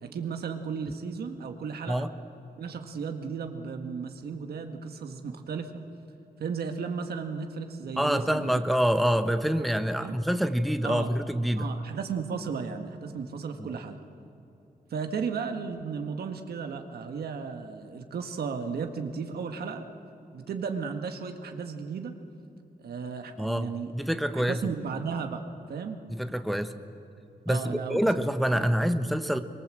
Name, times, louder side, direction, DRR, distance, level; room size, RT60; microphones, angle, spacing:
voice 1, 0.0-2.1 2.6-5.7 6.4-8.6 10.0-10.2 10.8-11.1 11.6-14.0 14.9-19.8 20.3-22.1 22.8-23.9 24.3-25.4 25.7-26.0 27.5-28.1 28.5-28.7, right 5 dB, 85° right, 5 dB, 1.7 m, -34 dB
voice 2, 8.0-11.7 13.6-13.7 23.4-24.7 26.1-26.7 27.5-29.4, equal, ahead, 8 dB, 1.1 m, -26 dB
24.0 x 22.0 x 7.7 m, 2.7 s
cardioid pair, 80°, 16 cm